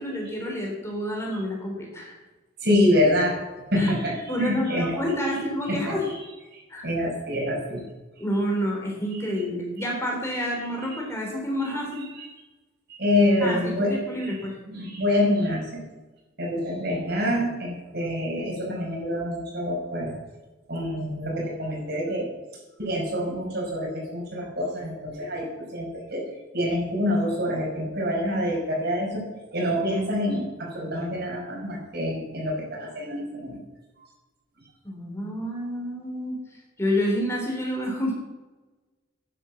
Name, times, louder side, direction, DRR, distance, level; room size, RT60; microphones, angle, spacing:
voice 1, 0.0-2.2 3.8-3.9 4.3-6.1 6.7-6.9 8.2-12.1 13.4-14.6 34.8-36.4 36.8-38.1, equal, 15° left, -1 dB, 3.4 m, -28 dB
voice 2, 2.6-3.4 3.7-4.9 5.3-5.4 5.7-6.0 6.5-7.8 12.0-12.3 12.9-14.0 14.2-14.3 14.7-15.8 16.4-20.1 20.7-22.3 22.8-26.2 26.5-29.3 29.5-33.6, left 1 dB, 55° right, -1 dB, 5.3 m, -26 dB
11.0 x 10.0 x 7.1 m, 1.2 s
head